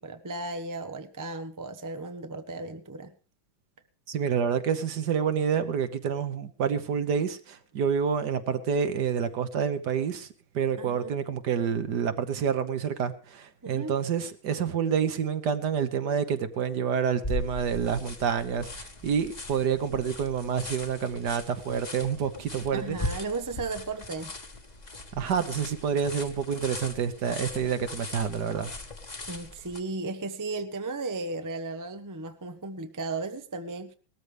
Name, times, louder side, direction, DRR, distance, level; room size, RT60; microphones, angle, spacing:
voice 1, 0.0-3.1 10.8-11.2 13.6-13.9 22.7-24.3 29.3-33.9, right 3 dB, 20° right, 0.5 m, -35 dB
voice 2, 4.1-10.3 10.5-23.0 25.1-28.7, right 7 dB, 60° right, 1.6 m, -28 dB
sound 1, 17.2-29.8, left 2 dB, 25° left, 1.2 m, -39 dB
19.0 x 13.5 x 3.4 m
omnidirectional pair, 2.2 m